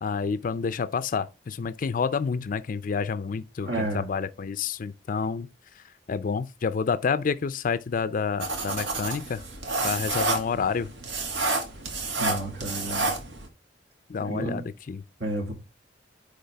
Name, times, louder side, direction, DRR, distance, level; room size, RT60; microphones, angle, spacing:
voice 1, 0.0-5.5 6.1-9.4 9.8-10.9 14.1-15.0, left 5 dB, 50° left, 0.4 m, -29 dB
voice 2, 3.6-4.1 12.2-13.1 14.2-14.6 15.2-15.5, right 1 dB, 70° right, 2.1 m, -31 dB
sound 1, 8.4-13.5, right 3 dB, 85° right, 1.8 m, -29 dB
9.6 x 3.5 x 3.4 m
head